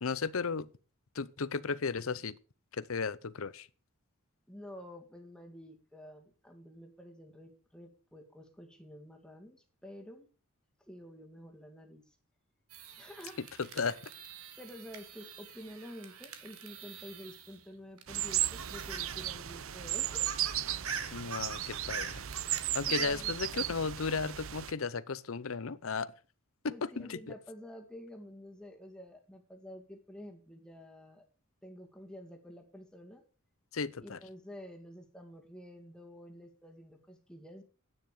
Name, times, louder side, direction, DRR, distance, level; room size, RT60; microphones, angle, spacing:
voice 1, 0.0-0.7 1.2-2.3 2.8-3.7 13.8-14.0 21.1-22.1 22.7-26.1 26.6-27.2 33.7-34.2, left 5 dB, 70° left, 0.7 m, -34 dB
voice 2, 4.5-10.3 10.9-12.2 13.0-13.7 14.6-21.0 22.8-23.6 26.7-31.3 31.6-33.2 34.0-37.6, equal, 5° left, 2.0 m, -50 dB
sound 1, 12.7-17.6 18.0-19.3 19.6-19.7 20.0-23.0, right 6 dB, 85° right, 1.9 m, -44 dB
sound 2, 18.1-24.7, right 13 dB, 65° right, 0.7 m, -35 dB
10.5 x 9.3 x 6.8 m
head